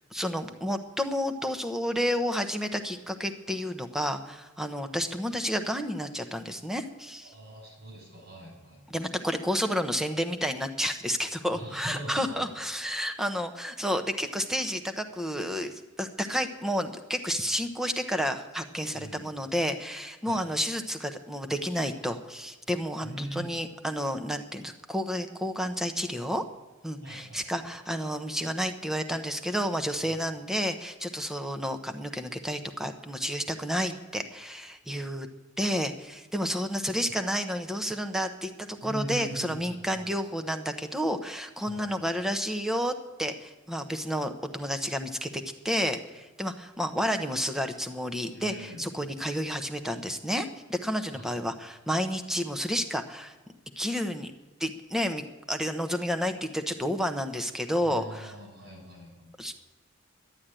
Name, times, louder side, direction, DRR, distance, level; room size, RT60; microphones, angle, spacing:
voice 1, 0.1-7.3 8.9-26.4 26.8-35.3 35.6-53.3 53.8-54.3 54.6-58.3 59.4-59.5, equal, ahead, 6 dB, 0.8 m, -31 dB
voice 2, 7.3-9.0 11.5-12.4 18.9-19.3 20.3-20.4 23.0-23.5 27.0-27.7 30.1-30.2 38.8-40.0 41.7-41.9 48.3-48.9 51.1-51.3 57.8-59.3, right 1 dB, 60° right, -1 dB, 7.1 m, -41 dB
11.5 x 11.5 x 9.0 m, 1.1 s
head